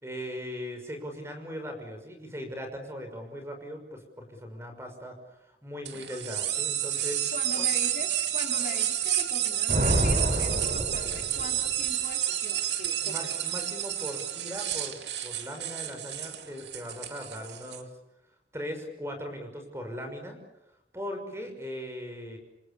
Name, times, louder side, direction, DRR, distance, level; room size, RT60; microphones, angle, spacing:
voice 1, 0.0-7.2 7.6-7.7 13.0-17.9 18.5-20.4 20.9-22.4, equal, 15° right, 5 dB, 6.0 m, -39 dB
sound 1, 5.8-17.8, right 11 dB, 75° right, 2.6 m, -30 dB
voice 2, 7.3-13.2, left 2 dB, 45° left, 3 dB, 3.6 m, -41 dB
Thunder, 9.7-11.9, equal, 45° right, 4.4 m, -28 dB
29.0 x 27.0 x 7.0 m, 0.88 s
head